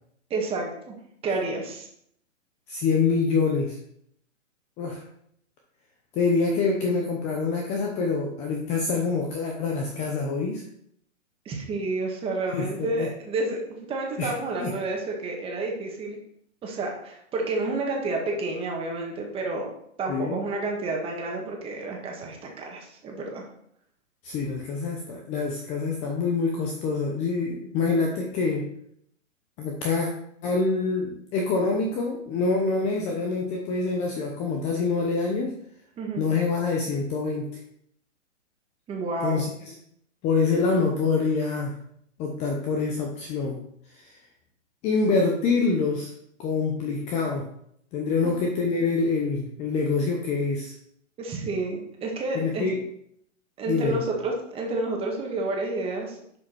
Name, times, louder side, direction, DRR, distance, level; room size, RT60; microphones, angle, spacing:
voice 1, 0.3-1.0 1.2-1.9 11.5-13.6 13.9-16.2 16.6-19.7 20.0-23.4 36.0-36.3 38.9-39.4 51.2-52.7 53.6-56.4, right 3 dB, 15° right, 0 dB, 1.8 m, -30 dB
voice 2, 2.7-3.8 4.8-5.0 6.1-10.6 12.5-13.1 14.2-14.3 14.6-14.7 20.1-20.4 24.2-28.7 29.6-30.1 30.4-35.5 36.2-37.4 39.2-39.7 40.2-41.7 42.2-43.6 43.9-44.2 44.8-46.1 46.4-47.5 47.9-50.7 52.3-52.8 53.7-54.0, left 4 dB, 15° left, 1 dB, 0.8 m, -26 dB
10.5 x 5.0 x 4.6 m, 0.71 s
hypercardioid pair, 150°, 38 cm